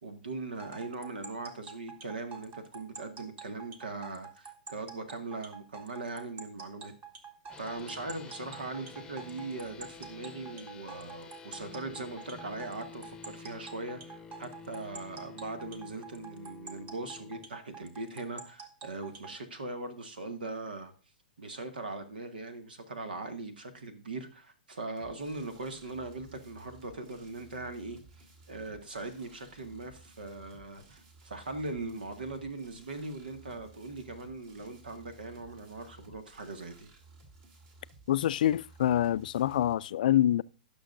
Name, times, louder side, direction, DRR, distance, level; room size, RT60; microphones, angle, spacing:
voice 1, 0.0-6.9 7.6-20.9 21.4-36.9, right 3 dB, 80° right, 1.8 m, -40 dB
sound 1, 0.6-19.3, right 6 dB, 30° right, 1.6 m, -47 dB
sound 2, 7.5-17.5, left 5 dB, 15° left, 0.8 m, -50 dB
sound 3, 25.0-39.7, right 3 dB, 45° right, 2.8 m, -57 dB
voice 2, 38.1-40.4, left 12 dB, 65° left, 0.4 m, -26 dB
17.0 x 6.3 x 2.6 m
hypercardioid pair, 120°, 5 cm